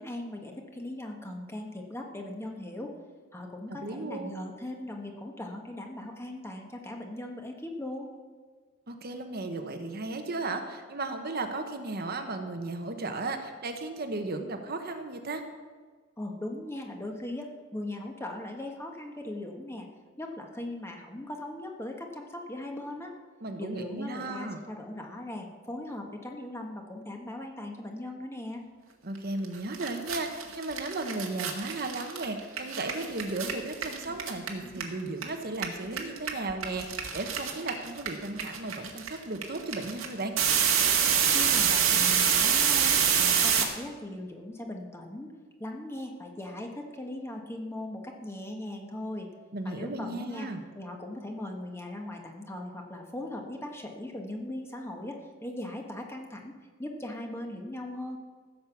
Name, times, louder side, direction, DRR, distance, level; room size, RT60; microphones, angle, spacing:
voice 1, 0.0-2.9 3.3-8.1 16.2-19.9 20.2-23.1 23.6-28.6 41.3-45.3 45.6-49.3 49.6-58.2, left 1 dB, 15° left, 2 dB, 1.4 m, -39 dB
voice 2, 3.7-4.4 8.9-15.4 23.4-24.6 29.0-40.3 49.5-50.6, right 2 dB, 50° right, 5 dB, 1.1 m, -35 dB
sound 1, 29.4-29.5 29.7-35.2 35.5-43.6, right 8 dB, 90° right, 1.8 m, -26 dB
15.0 x 6.6 x 7.1 m, 1.5 s
head